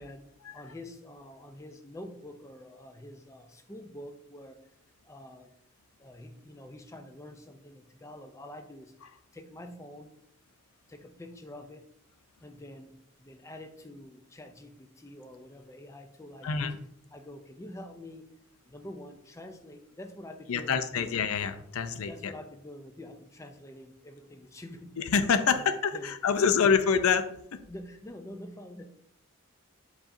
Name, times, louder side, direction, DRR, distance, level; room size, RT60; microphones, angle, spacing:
voice 1, 0.0-4.6 5.0-5.5 6.0-8.9 9.3-10.1 10.9-11.8 12.4-16.8 17.1-18.2 18.7-21.1 21.8-25.1 25.4-26.8 27.7-28.8, left 1 dB, 15° left, 6 dB, 0.3 m, -47 dB
voice 2, 20.5-22.3 25.0-27.3, left 6 dB, 75° left, 10 dB, 0.4 m, -26 dB
4.8 x 4.1 x 2.5 m, 0.71 s
head